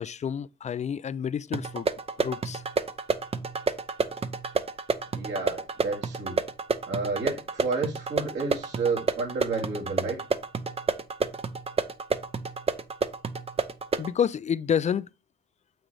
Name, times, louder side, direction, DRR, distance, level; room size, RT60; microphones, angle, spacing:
voice 1, 0.0-1.9 2.2-2.6 14.0-15.1, left 8 dB, 35° left, 0.4 m, -29 dB
sound 1, 1.5-14.1, right 4 dB, 30° right, 0.7 m, -30 dB
voice 2, 5.1-6.4 6.9-10.2, right 4 dB, 65° right, 2.4 m, -30 dB
7.6 x 6.0 x 3.3 m
cardioid pair, 90°, 20 cm